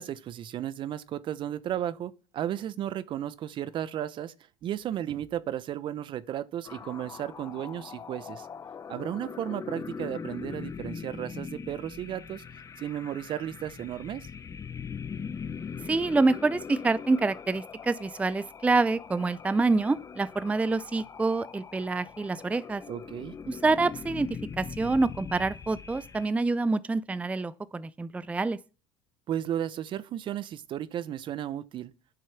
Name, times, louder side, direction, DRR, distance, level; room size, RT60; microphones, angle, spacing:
voice 1, 0.0-4.3 4.6-8.5 8.9-12.4 12.8-14.3 22.9-23.4 29.3-31.9, right 11 dB, 50° right, 0.8 m, -34 dB
sound 1, 6.6-26.3, left 6 dB, 30° left, 1.0 m, -41 dB
voice 2, 15.8-22.8 23.5-28.6, right 3 dB, 10° right, 0.5 m, -27 dB
9.6 x 6.7 x 5.9 m
supercardioid pair, 90°, 11 cm